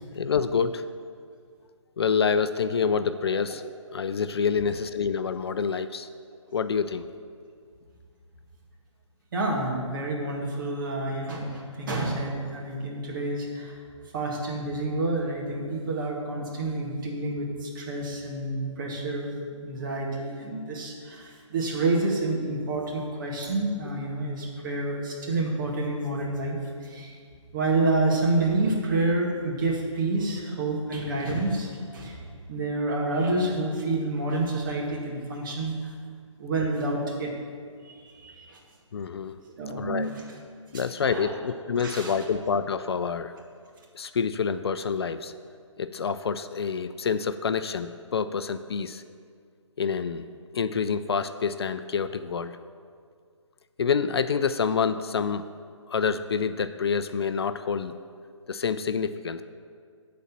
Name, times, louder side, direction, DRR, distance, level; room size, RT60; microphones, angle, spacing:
voice 1, 0.1-0.8 2.0-6.1 6.5-7.0 38.9-39.4 39.8-40.1 40.7-43.3 43.9-45.3 45.8-49.0 49.8-52.6 53.8-55.4 55.9-57.9 58.5-59.4, left 6 dB, 55° left, 11 dB, 0.4 m, -27 dB
voice 2, 9.3-13.8 14.1-27.1 27.5-32.2 32.5-35.9 36.4-37.3 37.8-38.6 39.6-40.1 40.7-41.4 41.8-42.1, right 2 dB, 40° right, -2 dB, 2.0 m, -28 dB
12.5 x 4.2 x 7.3 m, 2.1 s
figure-of-eight pair, 150°, 16 cm